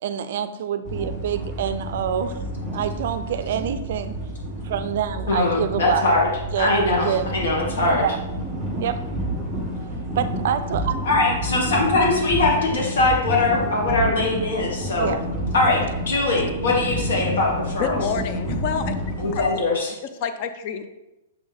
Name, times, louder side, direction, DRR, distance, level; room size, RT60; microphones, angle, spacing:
voice 1, 0.0-2.3 2.7-4.1 4.6-6.1 6.5-7.3 8.0-8.2 8.8-9.0 10.2-11.4 15.0-15.2, right 9 dB, 45° right, 11 dB, 0.4 m, -26 dB
sound 1, 0.9-19.5, right 1 dB, ahead, 1.2 m, -29 dB
voice 2, 5.3-6.3 6.6-8.1 11.0-15.1 15.5-15.8 16.1-18.0 19.2-19.9, left 2 dB, 65° left, -2 dB, 1.8 m, -21 dB
voice 3, 17.8-18.9 19.3-19.6 19.9-20.9, left 7 dB, 30° left, 9 dB, 0.5 m, -28 dB
7.1 x 4.3 x 3.5 m, 0.96 s
hypercardioid pair, 175°, 0 cm